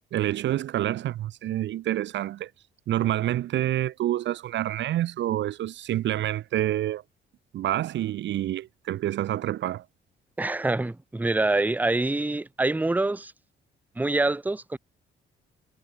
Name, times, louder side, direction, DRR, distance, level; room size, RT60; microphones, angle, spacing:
voice 1, 0.1-2.5 2.9-7.0 7.5-9.9, right 13 dB, 65° right, 0.6 m, -27 dB
voice 2, 10.4-13.3 14.0-14.8, right 2 dB, 10° right, 0.7 m, -25 dB
cardioid pair, 90°, 20 cm